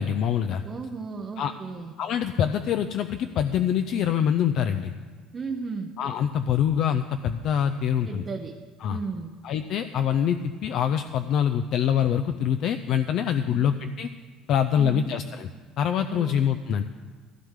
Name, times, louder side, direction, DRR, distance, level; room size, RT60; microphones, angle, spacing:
voice 1, 0.0-0.6 1.4-1.5 2.0-4.9 6.0-8.2 8.8-9.0 9.4-14.1 14.5-15.5 15.8-16.8, left 9 dB, 50° left, 8 dB, 0.4 m, -25 dB
voice 2, 0.6-1.9 5.3-5.9 8.1-8.6 8.9-9.3 13.4-13.7 14.8-15.1 16.1-16.4, right 4 dB, 25° right, 3 dB, 0.7 m, -35 dB
15.5 x 15.0 x 3.7 m, 1.5 s
cardioid pair, 160°, 0 cm